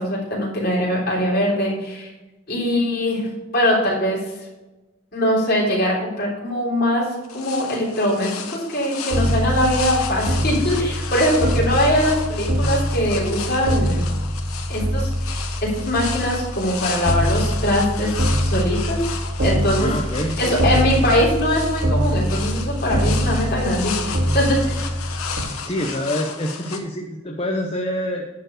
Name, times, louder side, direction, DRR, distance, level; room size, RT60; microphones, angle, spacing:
voice 1, 0.0-2.1 2.5-4.2 5.1-7.1 7.3-14.1 14.7-19.0 19.4-19.9 20.4-24.8, equal, 45° left, -4 dB, 3.5 m, -22 dB
sound 1, 7.2-26.8, left 6 dB, 85° left, 1.1 m, -33 dB
sound 2, 9.1-25.4, equal, 60° right, 2.3 m, -24 dB
voice 2, 19.8-20.6 25.7-28.3, equal, 25° left, 1 dB, 0.8 m, -26 dB
10.5 x 4.6 x 6.5 m, 1.1 s
head